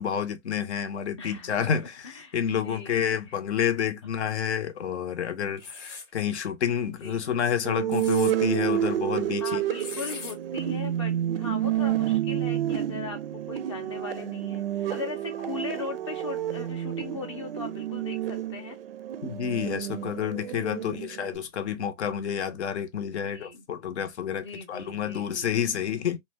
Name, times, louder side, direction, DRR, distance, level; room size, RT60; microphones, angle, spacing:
voice 1, 0.0-9.6 19.2-26.2, left 8 dB, 65° left, 0.7 m, -29 dB
voice 2, 1.2-3.4 7.0-7.3 9.4-18.8 20.9-21.0 23.2-23.6 24.3-25.6, left 4 dB, 25° left, 0.5 m, -39 dB
sound 1, 5.6-6.1 7.7-8.3 9.8-10.4, left 4 dB, 90° left, 1.0 m, -39 dB
sound 2, 7.6-21.4, right 12 dB, 55° right, 0.4 m, -29 dB
2.4 x 2.1 x 3.2 m
hypercardioid pair, 155°, 36 cm